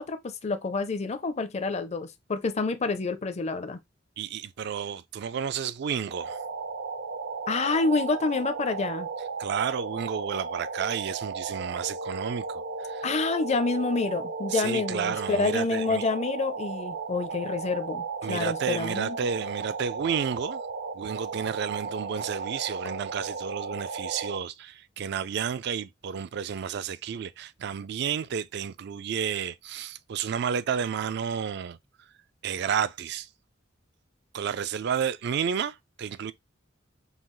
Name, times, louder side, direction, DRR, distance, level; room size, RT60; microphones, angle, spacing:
voice 1, 0.0-3.8 7.5-9.1 13.0-19.2, left 3 dB, 35° left, 0.5 m, -28 dB
voice 2, 4.2-6.4 9.4-13.1 14.5-16.0 18.2-20.6 20.9-31.8 32.4-33.3 34.3-36.3, right 7 dB, 60° right, 0.4 m, -31 dB
sound 1, 6.1-24.4, right 4 dB, 75° right, 0.8 m, -35 dB
5.6 x 2.3 x 3.0 m
head